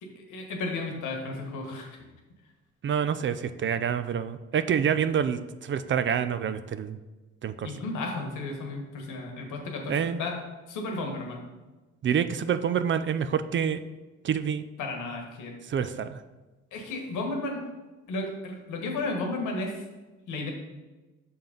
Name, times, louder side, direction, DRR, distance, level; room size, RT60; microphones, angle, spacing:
voice 1, 0.0-2.1 7.6-10.4 10.7-11.4 14.8-15.5 16.7-17.6 18.1-19.8 20.3-20.5, left 2 dB, 85° left, 2 dB, 1.3 m, -33 dB
voice 2, 2.8-7.0 7.4-7.7 9.9-10.2 12.0-13.8 14.2-14.6 15.7-16.2, right 8 dB, 40° right, 12 dB, 0.4 m, -27 dB
6.1 x 3.7 x 5.1 m, 1.2 s
cardioid pair, 90°, 30 cm